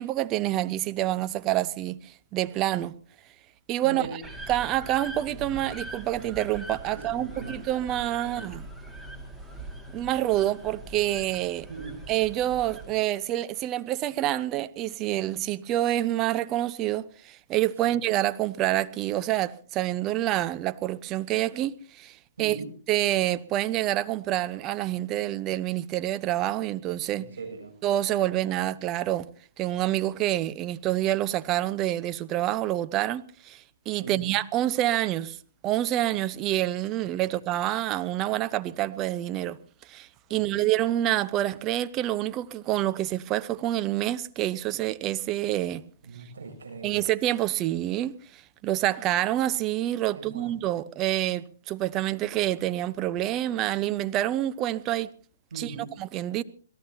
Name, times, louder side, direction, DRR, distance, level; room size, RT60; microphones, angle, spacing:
voice 1, 0.0-3.0 3.7-4.1 4.5-8.6 9.9-11.7 12.1-22.6 22.9-27.3 27.8-29.3 29.6-35.4 35.6-45.8 46.8-55.1 55.6-55.7 56.0-56.4, right 13 dB, 25° right, 0.8 m, -27 dB
voice 2, 3.8-4.2 6.9-7.6 8.2-8.5 11.7-12.0 17.8-17.9 22.4-22.7 27.1-27.7 34.0-34.3 37.0-37.4 40.3-40.5 46.0-47.1 50.1-50.7 55.5-55.9, right 4 dB, 75° right, 7.5 m, -40 dB
sound 1, 4.2-13.0, right 2 dB, ahead, 2.1 m, -42 dB
26.5 x 18.0 x 2.8 m
hypercardioid pair, 130°, 0 cm